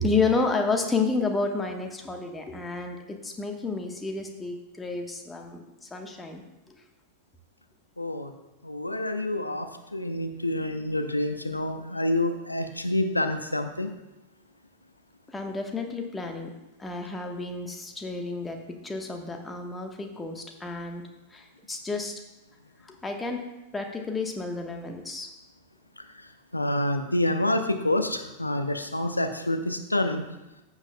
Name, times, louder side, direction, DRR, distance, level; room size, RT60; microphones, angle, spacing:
voice 1, 0.0-6.4 6.7-6.8 15.3-16.5 16.8-21.0 21.3-22.2 22.8-23.4 23.7-25.3, left 3 dB, 10° left, 3 dB, 1.1 m, -30 dB
voice 2, 8.0-8.3 8.6-13.9 26.5-30.2, left 1 dB, 85° left, 7 dB, 0.7 m, -27 dB
14.5 x 7.3 x 2.2 m, 0.98 s
figure-of-eight pair, 90°, 0 cm